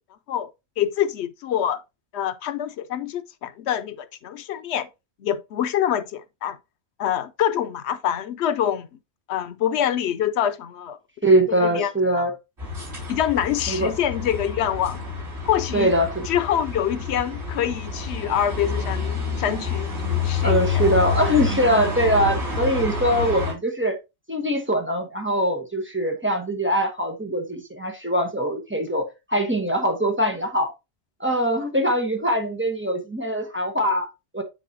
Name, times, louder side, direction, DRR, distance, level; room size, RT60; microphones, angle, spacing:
voice 1, 0.8-1.8 2.1-4.9 5.2-6.6 7.0-8.9 9.3-11.0 11.5-11.9 12.2-12.3 13.1-15.0 15.4-15.9 16.3-20.8, left 10 dB, 85° left, 0.9 m, -25 dB
voice 2, 11.2-12.3 13.7-13.9 15.7-16.3 20.4-24.0 24.3-30.7 31.2-34.4, equal, 10° right, 1.2 m, -22 dB
sound 1, 12.6-23.5, left 4 dB, 85° right, 5.0 m, -28 dB
9.5 x 3.9 x 2.7 m
omnidirectional pair, 1.1 m